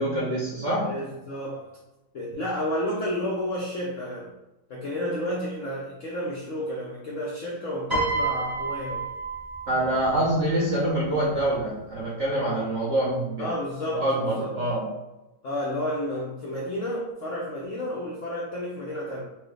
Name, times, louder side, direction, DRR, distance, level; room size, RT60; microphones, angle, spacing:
voice 1, 0.0-0.9 9.7-13.5 13.9-14.9, right 1 dB, 60° right, -6 dB, 0.8 m, -25 dB
voice 2, 0.8-1.8 2.1-4.3 4.7-9.1 13.4-14.5 15.4-19.2, equal, 70° left, -4 dB, 0.7 m, -31 dB
Piano, 7.9-10.3 11.3-11.6, right 3 dB, 15° right, 0.8 m, -29 dB
4.6 x 2.2 x 3.2 m, 0.98 s
omnidirectional pair, 2.0 m